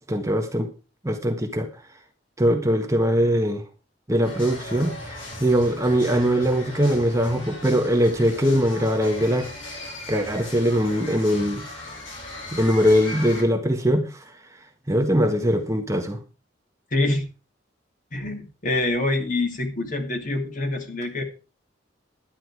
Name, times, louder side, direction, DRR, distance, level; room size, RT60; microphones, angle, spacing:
voice 1, 0.1-0.7 1.0-1.7 2.4-3.6 4.1-9.5 10.1-11.6 12.5-14.2 14.9-16.2, equal, 15° right, 1.5 m, -21 dB
sound 1, 4.2-13.4, left 1 dB, 75° left, 6.6 m, -38 dB
voice 2, 16.9-17.3 18.1-21.2, left 2 dB, 40° left, 2.7 m, -25 dB
12.0 x 10.0 x 4.8 m
head